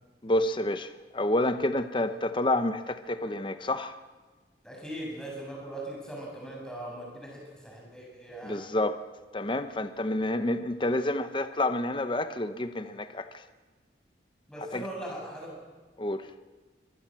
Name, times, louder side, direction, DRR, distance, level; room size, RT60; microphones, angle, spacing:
voice 1, 0.2-4.0 8.4-9.0 9.3-13.4 14.7-14.8 16.0-16.3, left 1 dB, 25° left, 0.9 m, -29 dB
voice 2, 4.6-8.6 14.5-15.5, right 1 dB, 5° left, 7.7 m, -40 dB
24.5 x 19.0 x 7.6 m
head